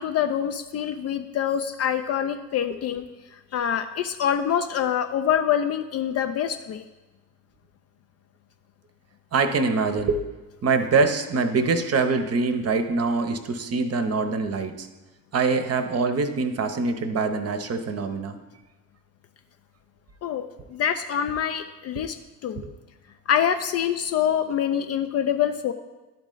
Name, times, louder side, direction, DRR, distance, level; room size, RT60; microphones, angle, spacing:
voice 1, 0.0-3.1 3.5-6.8 20.2-20.5 20.7-22.2 22.4-22.6 23.3-25.7, left 9 dB, 35° left, 8 dB, 0.4 m, -25 dB
voice 2, 9.3-10.2 10.6-14.9 15.3-18.3 22.6-22.7, right 4 dB, 35° right, 8 dB, 0.8 m, -24 dB
11.5 x 4.0 x 3.8 m, 1.1 s
figure-of-eight pair, 45°, 43 cm